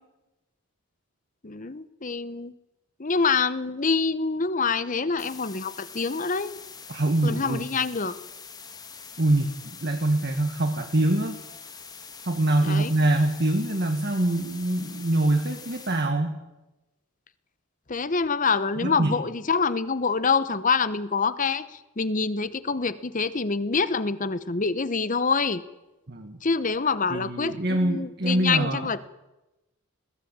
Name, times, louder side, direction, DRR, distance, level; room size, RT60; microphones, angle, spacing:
voice 1, 1.4-2.5 3.0-6.6 7.2-8.1 12.6-12.9 17.9-21.6 22.0-25.6 26.4-29.1, left 4 dB, 35° left, 15 dB, 0.9 m, -26 dB
sound 1, 5.2-16.1, left 6 dB, 20° left, 1.4 m, -44 dB
voice 2, 6.9-7.6 9.2-11.4 12.2-16.4 18.8-19.2 26.1-26.4 27.1-28.9, right 1 dB, 45° right, 5 dB, 1.6 m, -24 dB
21.0 x 16.0 x 8.9 m, 1.0 s
head